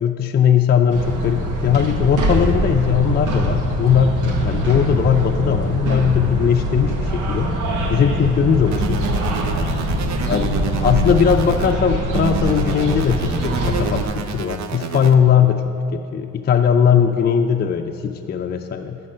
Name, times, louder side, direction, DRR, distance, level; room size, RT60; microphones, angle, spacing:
voice 1, 0.0-7.5 7.9-9.0 10.2-10.5 10.8-15.6 15.9-19.0, left 7 dB, 35° left, 4 dB, 0.4 m, -18 dB
sound 1, 0.9-14.1, right 1 dB, 85° right, 1.1 m, -23 dB
sound 2, 8.7-11.7 12.1-15.1, right 6 dB, 65° right, 0.6 m, -29 dB
8.7 x 5.7 x 5.4 m, 2.7 s
cardioid pair, 90°, 30 cm